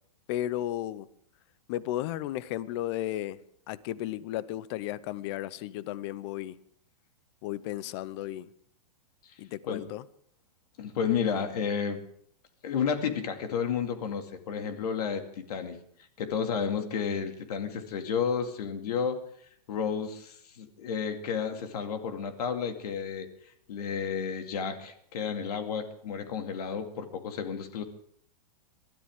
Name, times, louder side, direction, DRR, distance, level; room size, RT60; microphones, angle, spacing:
voice 1, 0.3-1.1 1.7-3.4 3.7-6.6 7.4-8.5 9.4-10.0, left 13 dB, 45° left, 0.7 m, -34 dB
voice 2, 10.8-12.0 12.6-15.8 16.2-19.2 19.7-23.3 23.7-27.8, left 6 dB, 70° left, 2.3 m, -31 dB
22.5 x 13.0 x 3.7 m
hypercardioid pair, 145°, 21 cm